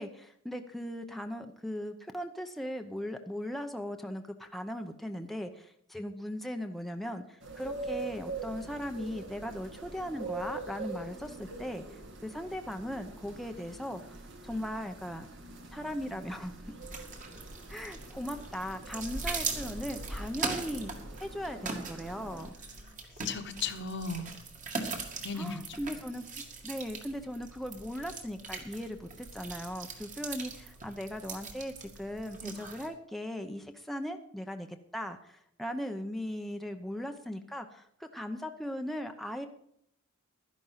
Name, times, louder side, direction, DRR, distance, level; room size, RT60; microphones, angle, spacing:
voice 1, 0.0-15.3 15.7-16.5 17.7-20.9 21.2-22.5 25.4-26.2 26.6-39.5, equal, ahead, 4 dB, 0.7 m, -38 dB
sound 1, 7.4-22.5, right 2 dB, 60° right, 2.0 m, -44 dB
voice 2, 11.2-11.7 22.6-22.9 23.2-24.3 25.2-25.8, left 4 dB, 60° left, 7 dB, 1.3 m, -37 dB
sound 2, 16.8-32.9, right 4 dB, 40° right, 2.1 m, -41 dB
12.5 x 10.5 x 5.7 m, 0.71 s
head